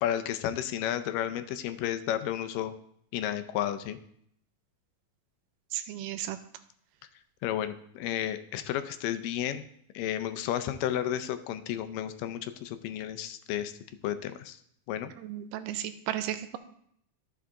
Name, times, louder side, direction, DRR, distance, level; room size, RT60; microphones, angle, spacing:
voice 1, 0.0-2.7 3.1-4.0 7.4-9.6 10.0-13.7 14.0-14.6 14.9-15.1, left 11 dB, 80° left, 10 dB, 2.2 m, -32 dB
voice 2, 5.7-6.4 15.2-16.6, right 12 dB, 80° right, 11 dB, 2.1 m, -34 dB
13.0 x 5.7 x 3.7 m, 0.70 s
omnidirectional pair, 3.9 m